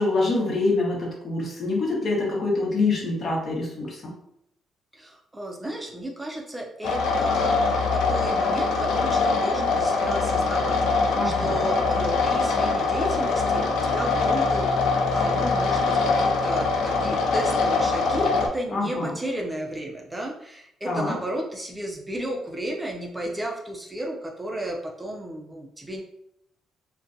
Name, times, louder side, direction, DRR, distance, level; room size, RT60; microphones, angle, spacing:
voice 1, 0.0-4.0 11.1-11.7 18.7-19.1 20.9-21.2, left 3 dB, 50° left, -2 dB, 1.0 m, -25 dB
voice 2, 4.9-26.0, right 1 dB, 15° right, 0 dB, 0.4 m, -33 dB
sound 1, 6.8-18.5, left 4 dB, 85° left, 0.4 m, -23 dB
2.5 x 2.2 x 2.5 m, 0.77 s
cardioid pair, 90°, 0 cm